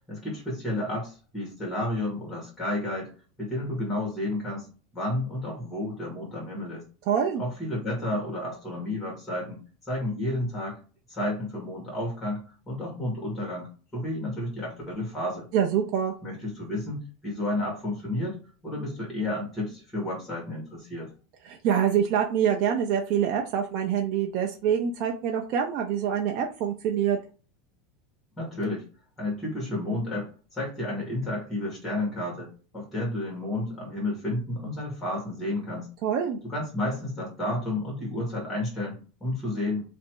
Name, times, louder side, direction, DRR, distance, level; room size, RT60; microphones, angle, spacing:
voice 1, 0.1-3.1 3.4-4.7 4.9-6.8 7.4-10.8 11.1-12.4 12.7-15.5 16.2-21.1 28.4-28.8 29.2-35.9 36.4-39.8, left 1 dB, 10° left, -2 dB, 1.8 m, -31 dB
voice 2, 7.1-7.4 15.5-16.1 21.4-27.2 36.0-36.4, right 8 dB, 45° right, 2 dB, 0.5 m, -25 dB
3.2 x 2.6 x 4.5 m, 0.36 s
supercardioid pair, 170°, 0 cm